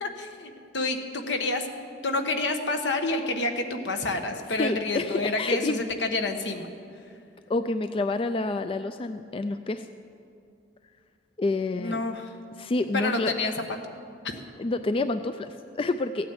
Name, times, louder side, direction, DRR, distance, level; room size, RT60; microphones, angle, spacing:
voice 1, 0.0-1.7 2.0-6.7 11.7-12.3 12.9-13.8 14.2-14.3, left 2 dB, 75° left, 5 dB, 1.3 m, -28 dB
voice 2, 4.6-5.8 7.5-9.9 11.4-12.0 12.6-13.3 14.6-16.3, left 2 dB, 30° left, 10 dB, 0.3 m, -28 dB
15.5 x 9.2 x 7.9 m, 2.4 s
head